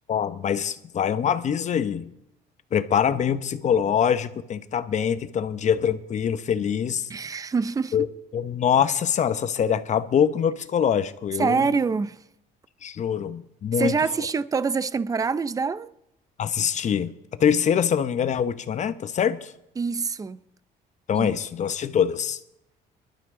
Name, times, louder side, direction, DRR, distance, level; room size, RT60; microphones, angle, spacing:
voice 1, 0.1-2.1 2.7-7.1 7.9-8.1 8.3-11.7 12.8-13.9 16.4-17.1 17.4-19.5 21.1-22.4, left 8 dB, 45° left, 0.9 m, -24 dB
voice 2, 7.1-8.0 11.4-12.2 13.8-15.9 19.8-20.4 21.1-21.3, right 5 dB, 20° right, 0.5 m, -25 dB
23.0 x 12.0 x 3.8 m
cardioid pair, 110°, 17 cm